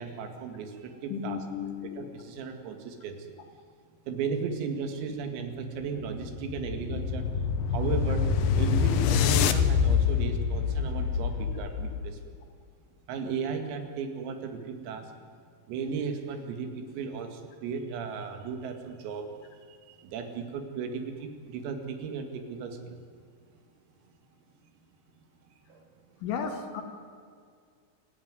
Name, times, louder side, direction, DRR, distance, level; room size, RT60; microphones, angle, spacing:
voice 1, 0.0-1.4 2.0-3.4 4.1-7.3 7.7-12.4 13.1-15.1 15.7-19.3 19.7-23.0 25.2-25.3 25.7-25.9, right 5 dB, 90° right, 6 dB, 4.8 m, -35 dB
voice 2, 1.1-2.1 26.2-26.8, left 7 dB, 70° left, 4 dB, 4.5 m, -34 dB
sound 1, 5.9-12.2, left 7 dB, 90° left, 2.0 m, -26 dB
27.0 x 15.0 x 9.7 m, 2.2 s
omnidirectional pair, 5.9 m